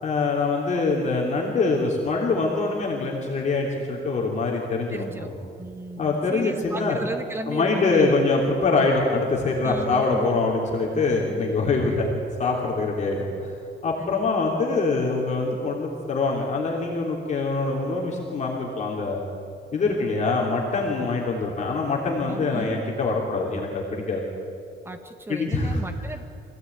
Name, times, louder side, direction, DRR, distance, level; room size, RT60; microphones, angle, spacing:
voice 1, 0.0-5.3 6.0-7.0 7.5-12.1 12.4-13.5 13.8-19.2 19.7-24.2 25.3-25.8, left 3 dB, 40° left, -1 dB, 3.1 m, -24 dB
voice 2, 4.9-5.3 5.6-8.1 9.6-10.4 11.8-12.0 14.0-14.5 19.8-20.0 22.2-22.9 24.8-26.2, right 2 dB, 15° right, 6 dB, 1.5 m, -35 dB
25.5 x 16.5 x 9.4 m, 2.4 s
cardioid pair, 175°, 18 cm